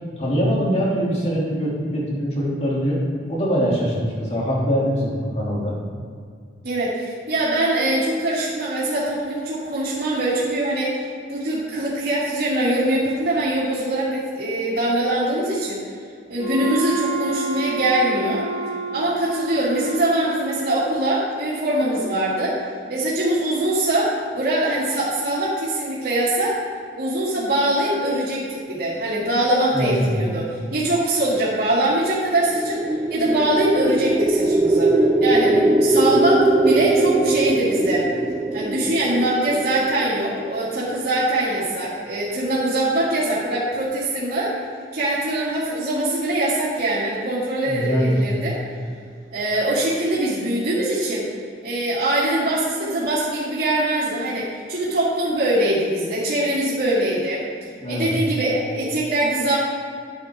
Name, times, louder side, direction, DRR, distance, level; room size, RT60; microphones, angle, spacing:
voice 1, 0.2-3.0 3.3-5.7 29.7-30.1 47.7-48.2 57.8-58.1, equal, 35° left, -5 dB, 2.9 m, -23 dB
voice 2, 6.6-11.0 11.3-15.8 16.3-18.5 18.9-22.6 22.9-26.6 27.0-30.5 30.7-32.8 33.1-38.1 38.5-44.6 44.9-48.6 49.3-51.3 51.6-57.4 57.9-59.6, right 1 dB, 60° right, -12 dB, 2.8 m, -22 dB
Wind instrument woodwind instrument, 16.4-21.1, right 3 dB, 65° left, 1.2 m, -30 dB
sound 1, 32.3-40.5, right 2 dB, 15° right, 0.4 m, -21 dB
11.5 x 8.6 x 3.7 m, 2.2 s
head